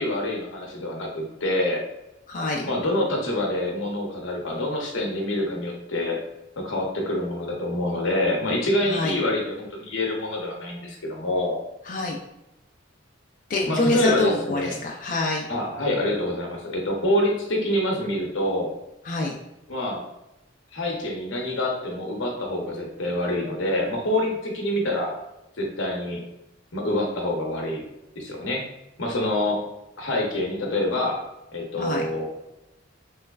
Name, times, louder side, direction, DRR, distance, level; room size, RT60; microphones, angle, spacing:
voice 1, 0.0-1.8 2.6-6.2 6.6-11.6 13.7-14.8 15.5-18.7 19.7-20.0 20.7-25.2 25.6-26.2 26.7-27.8 28.2-28.6 29.0-29.6 30.0-31.2 31.5-32.3, left 1 dB, 80° left, 0 dB, 0.8 m, -26 dB
voice 2, 2.3-2.6 8.9-9.2 11.9-12.2 13.5-15.5 19.0-19.4 31.8-32.1, left 3 dB, 45° left, -1 dB, 0.4 m, -26 dB
3.2 x 3.1 x 2.3 m, 0.92 s
head